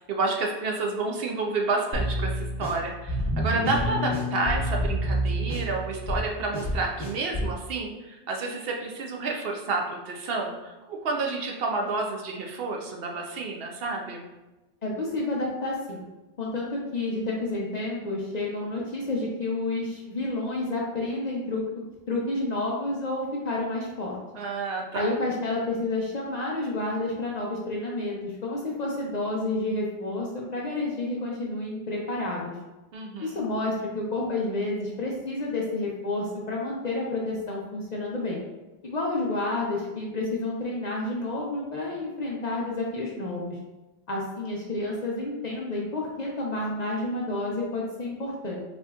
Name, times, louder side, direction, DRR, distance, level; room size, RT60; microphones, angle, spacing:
voice 1, 0.1-14.3 24.3-25.1 32.9-33.4, right 3 dB, 65° right, 0 dB, 0.7 m, -30 dB
sound 1, 1.9-7.6, equal, 10° left, 1.3 m, -28 dB
voice 2, 14.8-16.0 16.4-24.2 24.9-32.5 33.2-38.4 38.8-43.6 44.1-48.6, left 2 dB, 50° left, -3 dB, 0.5 m, -30 dB
4.2 x 2.9 x 2.3 m, 1.1 s
omnidirectional pair, 1.1 m